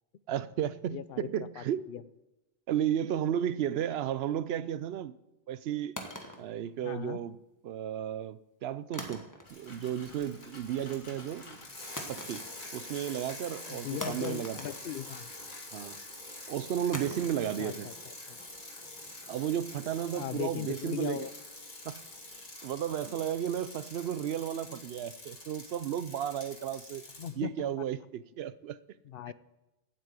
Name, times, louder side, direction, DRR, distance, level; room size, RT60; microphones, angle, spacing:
voice 1, 0.3-1.9 2.7-5.1 5.5-6.0 6.4-7.4 7.6-11.6 12.1-12.5 12.7-14.6 15.7-16.0 16.5-17.9 19.3-21.3 21.8-22.0 22.3-27.1 27.4-28.8 29.3-29.4, right 10 dB, 80° right, 0.8 m, -33 dB
voice 2, 0.9-2.0 6.8-7.2 13.7-15.2 17.6-18.4 20.1-21.3 27.2-27.7 29.1-29.3, left 10 dB, 70° left, 0.8 m, -38 dB
sound 1, 6.0-7.4 8.9-9.8 10.1-10.5 12.0-12.9 13.2-13.3 14.0-15.5 16.9-19.9, equal, 20° left, 1.5 m, -45 dB
Bicycle, 9.4-27.3, left 2 dB, 50° left, 2.2 m, -46 dB
8.9 x 8.4 x 8.1 m
omnidirectional pair, 1.0 m